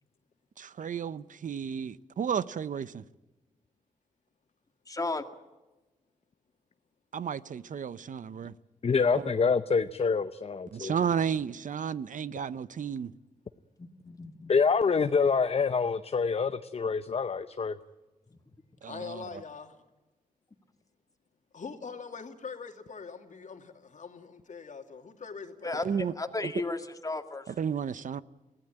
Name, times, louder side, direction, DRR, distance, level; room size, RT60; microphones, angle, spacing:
voice 1, 0.6-3.0 7.1-8.5 9.1-9.3 10.7-13.1 18.8-19.4 25.8-26.1 26.4-26.5 27.5-28.2, right 7 dB, 65° right, 0.7 m, -33 dB
voice 2, 4.9-5.2 13.8-14.5 25.6-25.9 26.2-27.4, left 2 dB, 25° left, 2.1 m, -34 dB
voice 3, 8.8-10.9 14.5-17.8, left 5 dB, 45° left, 0.7 m, -26 dB
voice 4, 18.9-19.8 21.5-25.8, left 5 dB, 60° left, 2.5 m, -43 dB
23.0 x 16.5 x 8.9 m
cardioid pair, 75°, 14 cm